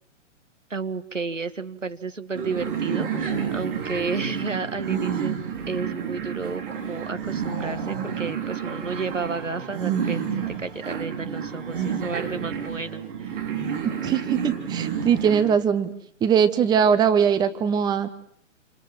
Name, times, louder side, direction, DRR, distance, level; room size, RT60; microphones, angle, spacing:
voice 1, 0.7-5.4 5.7-13.4, right 4 dB, 80° right, 10 dB, 1.9 m, -32 dB
sound 1, 2.3-15.5, right 7 dB, 45° right, 5.1 m, -30 dB
voice 2, 14.0-15.9 16.2-18.1, right 7 dB, 10° right, 11 dB, 1.1 m, -21 dB
29.0 x 26.0 x 7.6 m, 0.65 s
figure-of-eight pair, 120°, 37 cm